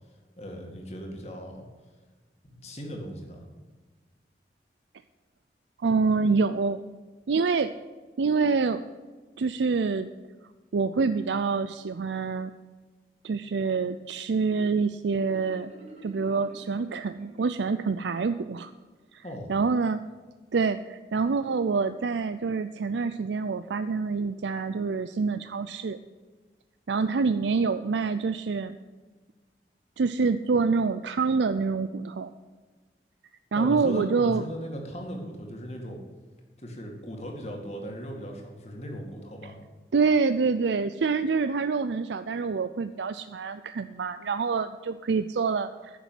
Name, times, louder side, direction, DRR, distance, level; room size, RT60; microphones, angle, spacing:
voice 1, 0.4-1.7 2.4-3.5 19.2-19.5 33.6-36.0 36.6-39.6, equal, 35° left, 2 dB, 2.2 m, -38 dB
voice 2, 5.8-6.8 7.3-7.8 8.2-8.8 9.4-10.1 10.7-12.5 13.2-15.7 16.0-18.7 19.1-20.0 20.5-26.0 26.9-28.8 30.0-32.3 33.5-34.4 39.9-46.0, right 4 dB, 85° right, 11 dB, 0.5 m, -26 dB
Marimba xylophone, 15.1-17.9, right 1 dB, 40° right, 3.0 m, -49 dB
10.0 x 7.1 x 9.4 m, 1.3 s
head